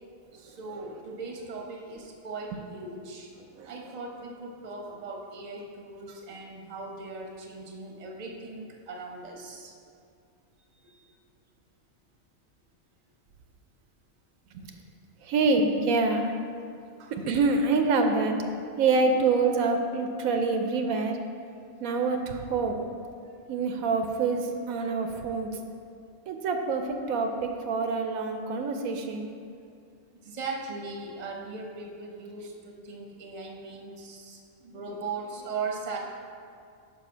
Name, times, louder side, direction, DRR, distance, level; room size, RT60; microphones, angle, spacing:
voice 1, 0.3-3.3 3.6-9.7 10.6-11.0 17.0-17.1 30.2-36.0, right 4 dB, 35° right, 0 dB, 0.8 m, -39 dB
voice 2, 15.2-16.3 17.1-18.4 18.8-21.2 21.8-22.8 23.5-25.5 26.3-29.3, right 4 dB, 80° right, 5 dB, 1.0 m, -26 dB
5.0 x 4.8 x 6.0 m, 2.4 s
omnidirectional pair, 1.5 m